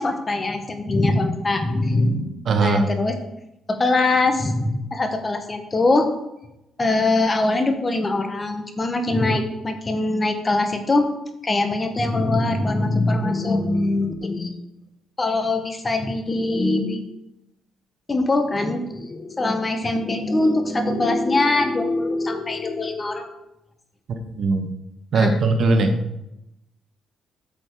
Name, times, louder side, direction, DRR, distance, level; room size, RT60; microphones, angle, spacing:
voice 1, 0.0-2.3 2.6-3.1 3.7-6.1 6.8-11.1 11.4-14.5 15.2-17.0 18.1-23.3 25.1-25.4, left 2 dB, 30° left, 6 dB, 1.4 m, -22 dB
voice 2, 2.5-2.9 24.1-24.7 25.1-25.9, right 3 dB, 60° right, 6 dB, 1.3 m, -20 dB
8.9 x 7.5 x 4.8 m, 0.89 s
cardioid pair, 90°, 0 cm